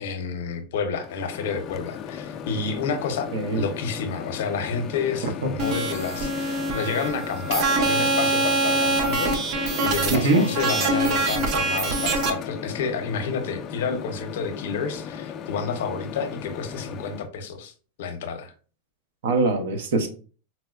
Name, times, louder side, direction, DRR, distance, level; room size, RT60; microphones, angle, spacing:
voice 1, 0.0-3.3 3.5-17.7 18.0-18.5, left 5 dB, 75° left, 8 dB, 0.6 m, -30 dB
Microwave oven, 1.0-17.3, left 7 dB, 35° left, 0.3 m, -36 dB
voice 2, 3.3-3.6 5.4-5.5 10.1-10.5 19.2-20.1, right 3 dB, 80° right, 5 dB, 0.7 m, -22 dB
sound 1, 5.6-12.3, right 2 dB, 40° right, 0.6 m, -24 dB
4.1 x 2.1 x 2.4 m, 0.39 s
supercardioid pair, 140°, 0 cm